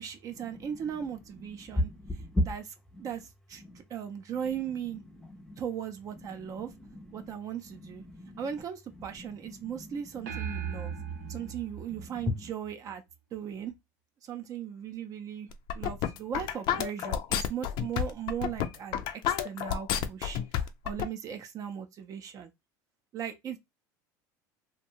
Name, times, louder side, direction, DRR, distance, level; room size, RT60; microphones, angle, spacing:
voice 1, 0.0-1.9 2.5-2.6 3.0-5.0 5.6-6.7 7.1-8.0 8.4-11.0 11.3-13.0 13.3-13.7 14.2-15.5 15.7-20.4 20.8-22.5 23.1-23.6, right 8 dB, 40° right, 0.5 m, -37 dB
voice 2, 1.6-2.4 2.9-3.0 3.6-3.8 5.2-5.6 6.4-7.3 7.7-8.4 9.0-10.3 10.5-11.5 11.9-12.5, left 1 dB, 5° left, 0.6 m, -36 dB
sound 1, 10.3-12.9, right 7 dB, 85° right, 0.8 m, -38 dB
sound 2, 15.5-21.1, left 10 dB, 55° left, 0.4 m, -30 dB
2.6 x 2.2 x 2.8 m
supercardioid pair, 115°, 9 cm